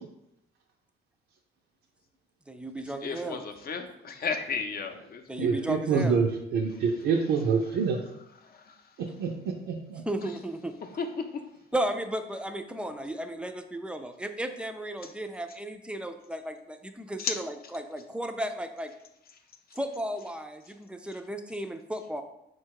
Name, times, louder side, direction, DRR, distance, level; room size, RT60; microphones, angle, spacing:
voice 1, 2.5-3.4 5.3-6.2 10.1-10.7 11.7-18.9 19.8-22.2, right 1 dB, 5° right, 7 dB, 0.3 m, -34 dB
voice 2, 3.0-5.2 10.9-11.1 17.2-17.3, left 5 dB, 50° left, 6 dB, 0.6 m, -33 dB
voice 3, 5.4-8.0 9.2-10.0, right 5 dB, 80° right, -1 dB, 0.5 m, -26 dB
4.1 x 2.3 x 4.6 m, 0.82 s
cardioid pair, 90°, 20 cm